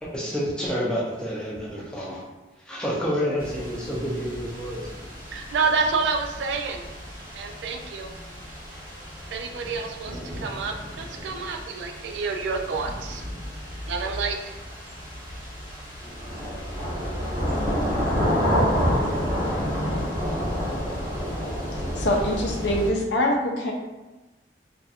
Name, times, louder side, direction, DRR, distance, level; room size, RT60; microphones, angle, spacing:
voice 1, 0.0-2.2 2.7-4.9, equal, 5° left, -5 dB, 0.5 m, -29 dB
sound 1, 3.4-22.9, equal, 55° right, 1.1 m, -30 dB
voice 2, 5.3-6.8 7.3-8.1 9.3-13.2 13.9-14.4, right 4 dB, 80° right, 4 dB, 0.3 m, -28 dB
voice 3, 21.7-23.7, left 1 dB, 75° left, -1 dB, 0.5 m, -24 dB
2.6 x 2.4 x 2.4 m, 1.1 s
head